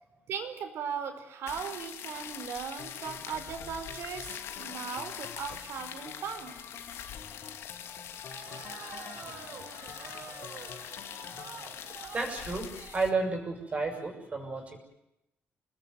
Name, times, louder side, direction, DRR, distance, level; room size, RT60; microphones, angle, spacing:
voice 1, 0.3-6.6, right 7 dB, 75° right, 8 dB, 4.9 m, -38 dB
sound 1, 1.5-13.1, left 9 dB, 85° left, 2.6 m, -43 dB
sound 2, 2.8-11.5, left 7 dB, 60° left, 3.1 m, -49 dB
sound 3, 8.3-13.1, right 7 dB, 55° right, 2.9 m, -47 dB
voice 2, 9.2-9.6 12.1-14.8, right 3 dB, 30° right, 4 dB, 6.4 m, -33 dB
27.5 x 20.0 x 9.5 m, 0.86 s
cardioid pair, 135°, 4 cm